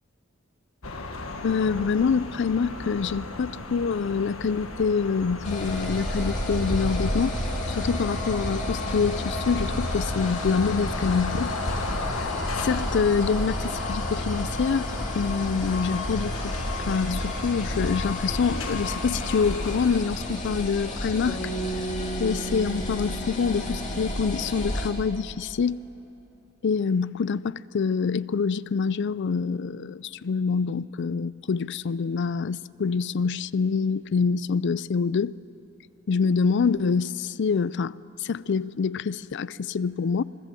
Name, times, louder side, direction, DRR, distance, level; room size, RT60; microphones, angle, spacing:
sound 1, 0.8-20.0, left 3 dB, 75° left, 1.7 m, -35 dB
voice 1, 1.4-7.3 7.7-11.5 12.2-12.3 12.6-16.5 16.8-21.4 22.2-25.8 26.6-35.4 36.1-40.2, left 5 dB, 55° left, 0.4 m, -26 dB
sound 2, 5.4-24.9, left 1 dB, 35° left, 2.9 m, -31 dB
sound 3, 21.3-25.5, right 2 dB, 20° left, 2.8 m, -36 dB
26.5 x 20.5 x 7.6 m
head